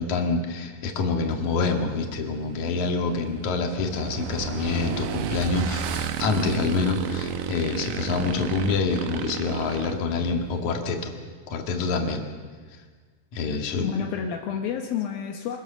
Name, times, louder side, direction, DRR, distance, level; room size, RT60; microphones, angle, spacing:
voice 1, 0.0-11.1 11.5-12.2 12.7-12.8 13.3-14.1, left 4 dB, 55° left, 3 dB, 3.1 m, -26 dB
Motorcycle / Engine, 1.0-10.7, right 8 dB, 70° right, 2.4 m, -33 dB
voice 2, 13.5-15.6, left 8 dB, 75° left, 3 dB, 2.9 m, -30 dB
24.5 x 19.0 x 6.9 m, 1.5 s
omnidirectional pair, 4.3 m